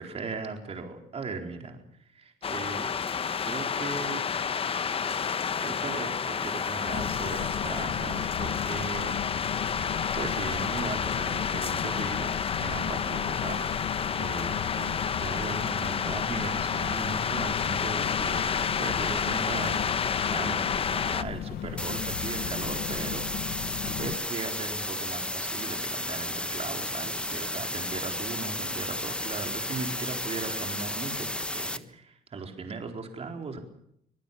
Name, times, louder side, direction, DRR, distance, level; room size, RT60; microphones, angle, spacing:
voice 1, 0.0-2.9 3.4-4.2 5.6-9.2 9.8-19.9 20.2-33.6, right 4 dB, 35° right, 4 dB, 4.3 m, -38 dB
sound 1, 2.4-21.2, left 6 dB, 35° left, 1.0 m, -30 dB
sound 2, 6.9-24.2, left 10 dB, 60° left, 1.0 m, -36 dB
sound 3, 21.8-31.8, left 1 dB, 5° left, 1.2 m, -33 dB
25.0 x 19.5 x 7.1 m, 0.72 s
cardioid pair, 110°, 17 cm